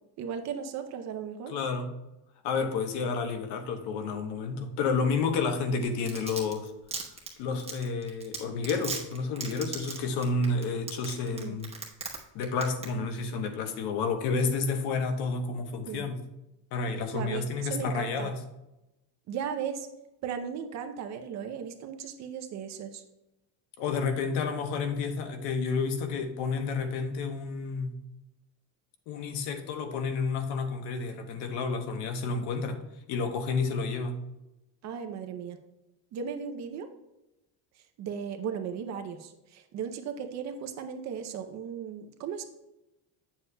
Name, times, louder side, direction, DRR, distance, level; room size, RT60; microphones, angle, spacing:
voice 1, 0.2-1.5 11.3-11.6 15.9-16.1 17.1-18.3 19.3-19.9 20.2-23.0 34.8-35.6 36.1-36.9 38.0-42.4, right 7 dB, 40° right, 6 dB, 0.5 m, -36 dB
voice 2, 1.5-1.9 2.4-6.7 7.4-11.7 12.3-16.2 16.7-18.4 23.8-27.9 29.1-32.8 33.1-34.2, left 4 dB, 60° left, 7 dB, 1.0 m, -30 dB
Domestic sounds home sounds, 5.8-12.2 12.4-12.9 13.2-13.3, right 4 dB, 15° right, 0.9 m, -36 dB
8.3 x 7.2 x 2.2 m, 0.94 s
cardioid pair, 160°, 44 cm